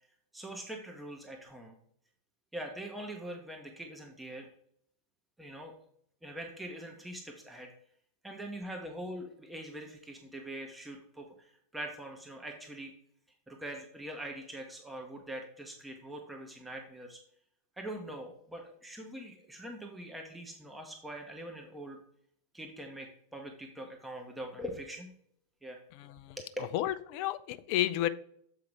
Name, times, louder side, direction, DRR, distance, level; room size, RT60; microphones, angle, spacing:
voice 1, 0.3-1.7 2.5-4.5 5.4-5.7 6.2-7.7 8.2-12.9 13.5-17.2 17.8-22.0 22.5-25.1 25.6-25.8 26.4-26.5, right 1 dB, 5° right, 2 dB, 0.9 m, -43 dB
voice 2, 26.0-26.4 26.7-28.1, left 14 dB, 45° left, 14 dB, 0.4 m, -31 dB
7.8 x 4.8 x 3.4 m, 0.67 s
figure-of-eight pair, 90°, 0 cm